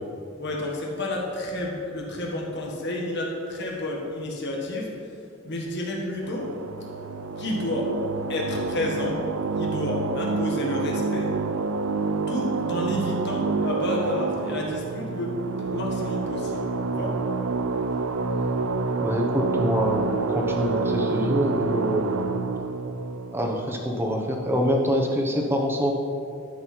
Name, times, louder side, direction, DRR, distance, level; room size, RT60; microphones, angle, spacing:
voice 1, 0.4-4.9 5.4-6.5 7.4-8.0 8.3-9.2 9.5-11.3 12.3-17.1, left 1 dB, 55° left, -1 dB, 1.7 m, -30 dB
sound 1, 6.2-24.4, right 4 dB, 75° right, 0.5 m, -28 dB
voice 2, 19.0-22.2 23.3-25.9, equal, 10° right, 1 dB, 1.0 m, -25 dB
11.5 x 6.3 x 4.6 m, 2.4 s
head